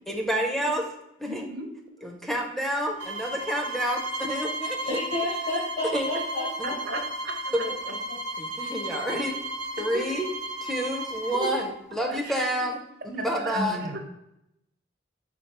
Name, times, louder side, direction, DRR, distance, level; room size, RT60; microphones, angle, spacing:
voice 1, 0.1-0.8 1.2-1.5 2.0-5.0 5.8-6.1 6.6-6.7 7.5-7.7 8.4-9.4 9.8-10.3 10.6-12.8 13.0-13.8, equal, ahead, 1 dB, 0.4 m, -29 dB
voice 2, 1.3-1.7 2.0-2.1 6.8-7.3 9.9-10.1 11.4-11.5 12.1-12.4 13.2-14.0, right 2 dB, 55° right, 3 dB, 0.6 m, -35 dB
sound 1, 3.0-11.6, right 1 dB, 70° right, 1.0 m, -34 dB
voice 3, 4.9-7.0 7.9-8.0 13.5-13.9, left 1 dB, 70° left, -6 dB, 1.1 m, -31 dB
4.5 x 3.5 x 2.8 m, 0.83 s
head